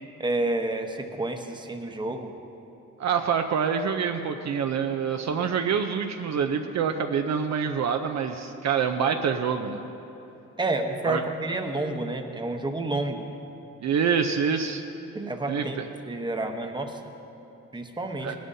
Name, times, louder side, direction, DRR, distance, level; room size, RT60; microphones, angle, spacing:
voice 1, 0.2-2.3 10.6-13.3 15.1-15.8 16.1-17.0 17.7-18.3, right 2 dB, 15° right, 4 dB, 1.0 m, -29 dB
voice 2, 3.0-9.8 11.1-11.2 13.8-14.8 15.5-15.8 18.2-18.3, right 6 dB, 55° right, 5 dB, 0.6 m, -26 dB
17.5 x 11.0 x 2.7 m, 2.9 s
cardioid pair, 85°, 33 cm